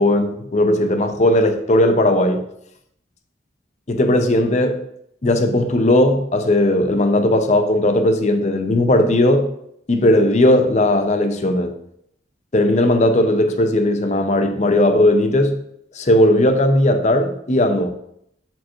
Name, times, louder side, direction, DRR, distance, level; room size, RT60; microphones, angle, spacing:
voice 1, 0.0-2.4 3.9-4.8 5.2-9.5 9.9-11.7 12.5-15.6 15.9-17.9, left 1 dB, 40° left, 0.6 m, -17 dB
7.3 x 4.4 x 3.0 m
head